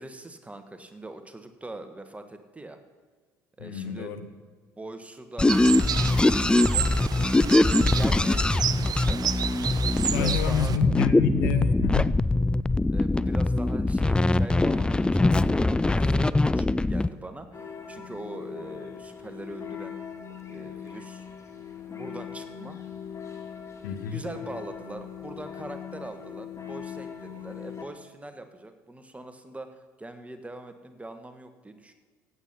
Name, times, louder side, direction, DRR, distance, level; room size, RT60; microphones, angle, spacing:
voice 1, 0.0-2.8 3.6-4.1 4.4-4.5 4.8-5.5 6.0-6.9 7.9-9.4 10.0-10.8 12.9-20.0 20.5-21.3 21.9-22.8 23.8-31.9, right 2 dB, 10° right, 8 dB, 1.5 m, -42 dB
voice 2, 3.6-4.3 10.1-12.1 23.8-24.2, left 8 dB, 70° left, 9 dB, 1.1 m, -28 dB
sound 1, 5.4-17.1, left 2 dB, 10° left, 0.4 m, -22 dB
sound 2, 5.5-10.8, right 8 dB, 35° right, 0.6 m, -31 dB
sound 3, 17.5-27.9, left 8 dB, 25° left, 2.1 m, -40 dB
16.0 x 8.4 x 5.9 m, 1.5 s
figure-of-eight pair, 60°, 11 cm